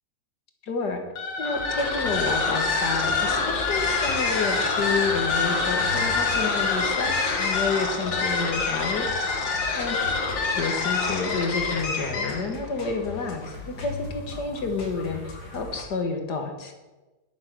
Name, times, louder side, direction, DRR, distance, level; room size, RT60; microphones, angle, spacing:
voice 1, 0.6-1.0 1.4-10.0 10.5-16.7, left 4 dB, 65° left, 5 dB, 2.0 m, -30 dB
sound 1, 1.1-12.5, left 4 dB, 80° left, 2.3 m, -26 dB
sound 2, 1.5-15.8, left 3 dB, 45° left, 2.4 m, -40 dB
10.5 x 9.3 x 6.1 m, 1.1 s
omnidirectional pair, 2.0 m